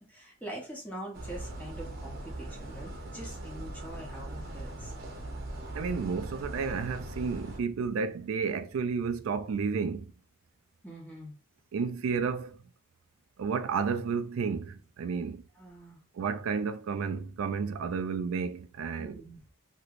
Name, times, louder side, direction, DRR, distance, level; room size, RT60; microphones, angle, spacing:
voice 1, 0.1-4.9 10.8-11.3 15.6-16.0 19.0-19.4, right 1 dB, 10° left, 1.0 m, -44 dB
sound 1, 1.1-7.6, right 1 dB, 45° right, 0.9 m, -40 dB
voice 2, 5.7-10.1 11.7-12.6 13.4-15.4 16.1-19.2, right 5 dB, 75° right, 0.3 m, -31 dB
3.1 x 3.0 x 2.4 m
head